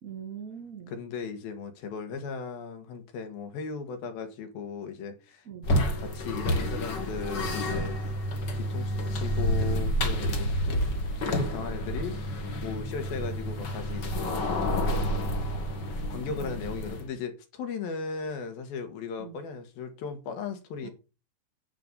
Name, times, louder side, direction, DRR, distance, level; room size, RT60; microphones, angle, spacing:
voice 1, 0.0-0.9 5.4-5.7 16.2-16.5 19.2-19.4 20.8-20.9, right 8 dB, 35° right, 1.6 m, -42 dB
voice 2, 0.9-5.5 6.0-8.0 8.6-14.6 16.1-20.9, left 5 dB, 80° left, 3.7 m, -37 dB
sound 1, 5.6-17.1, equal, 45° left, 1.5 m, -29 dB
9.2 x 6.9 x 6.8 m
omnidirectional pair, 4.2 m